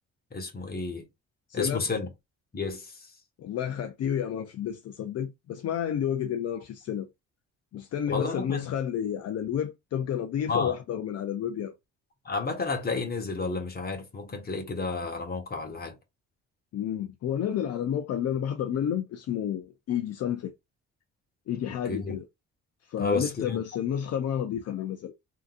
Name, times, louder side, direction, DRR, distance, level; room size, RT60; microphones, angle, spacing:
voice 1, 0.3-1.1 1.5-2.1 2.5-3.1 8.1-8.6 10.5-10.7 12.2-15.9 21.8-22.2 23.0-23.6, left 4 dB, 30° left, 1.2 m, -31 dB
voice 2, 1.5-1.9 3.4-7.1 7.7-11.7 16.7-20.5 21.5-22.3 22.8-25.1, left 9 dB, 55° left, 0.5 m, -30 dB
3.5 x 2.8 x 2.5 m
cardioid pair, 90°, 30 cm